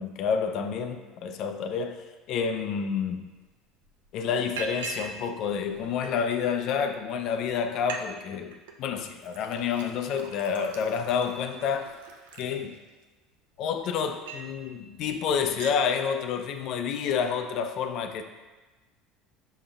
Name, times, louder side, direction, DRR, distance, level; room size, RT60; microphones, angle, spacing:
voice 1, 0.0-3.3 4.1-11.9 12.4-12.8 13.6-18.2, left 6 dB, 60° left, 7 dB, 0.4 m, -29 dB
Liquid, 3.4-3.5 3.8-4.1 4.6-5.2 5.5-6.4 7.0-7.1 7.4-7.5 7.7-8.0 8.3-8.7 9.2-13.0 13.6-14.6 15.0-15.1 15.4-15.8, right 4 dB, 80° right, 0.4 m, -41 dB
6.1 x 3.7 x 2.3 m, 1.2 s
hypercardioid pair, 75°, 0 cm